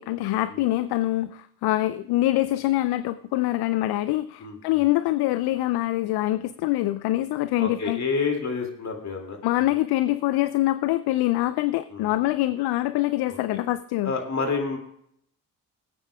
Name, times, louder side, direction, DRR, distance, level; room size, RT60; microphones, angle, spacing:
voice 1, 0.0-8.0 9.4-14.1, left 16 dB, 55° left, 14 dB, 0.5 m, -24 dB
voice 2, 4.4-4.9 7.6-9.7 11.9-12.2 13.5-13.6 14.0-14.8, left 4 dB, 35° left, 2 dB, 2.6 m, -29 dB
21.5 x 8.9 x 2.4 m, 0.69 s
hypercardioid pair, 45°, 49 cm